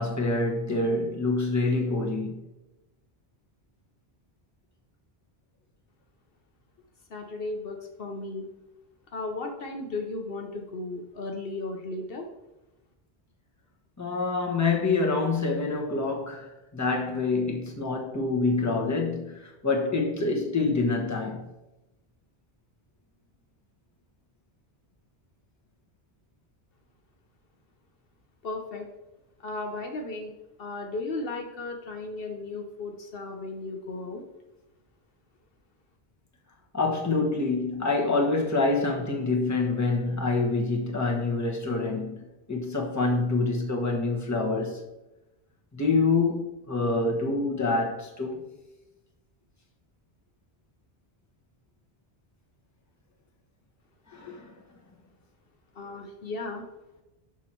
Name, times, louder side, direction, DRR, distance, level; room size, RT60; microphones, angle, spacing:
voice 1, 0.0-2.5 14.0-21.5 36.7-44.8 45.7-48.4 54.1-54.5, left 3 dB, 15° left, 1.2 m, -26 dB
voice 2, 7.1-8.5 9.1-12.3 28.4-28.9 29.4-30.3 30.6-34.2 55.8-56.6, left 2 dB, 65° left, 1.0 m, -35 dB
6.1 x 6.1 x 4.4 m
omnidirectional pair, 1.0 m